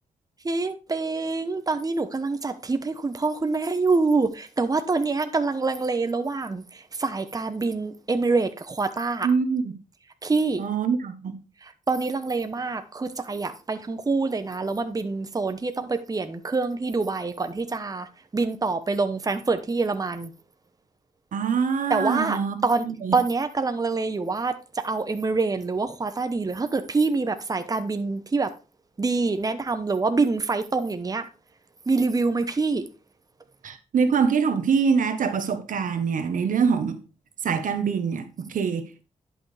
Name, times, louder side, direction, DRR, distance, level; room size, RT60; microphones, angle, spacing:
voice 1, 0.4-6.6 7.0-9.3 10.2-10.6 11.9-18.1 18.3-20.3 21.9-22.9 23.1-24.5 24.8-28.5 29.0-31.3 31.9-32.8, right 3 dB, 25° right, 1.0 m, -25 dB
voice 2, 9.2-9.7 10.6-11.4 21.3-22.6 22.8-23.2 33.6-37.0 37.4-39.0, right 6 dB, 75° right, 1.2 m, -24 dB
11.0 x 6.0 x 3.3 m
cardioid pair, 75°, 14 cm